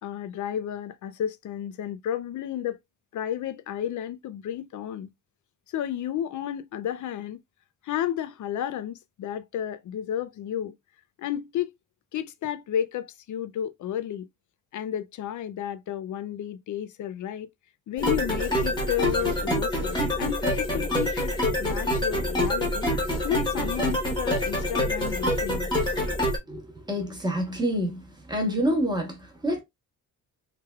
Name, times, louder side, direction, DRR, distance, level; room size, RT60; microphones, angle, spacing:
voice 1, 0.0-2.8 3.1-5.1 5.7-7.4 7.8-10.7 11.2-11.7 12.1-14.3 14.7-17.5 17.9-22.9 23.2-25.7, left 10 dB, 60° left, 0.5 m, -32 dB
sound 1, 18.0-26.4, left 1 dB, 10° left, 1.0 m, -26 dB
voice 2, 26.5-28.0 28.3-29.6, equal, 10° right, 0.9 m, -27 dB
3.4 x 3.3 x 2.3 m
wide cardioid pair, 170°, 34 cm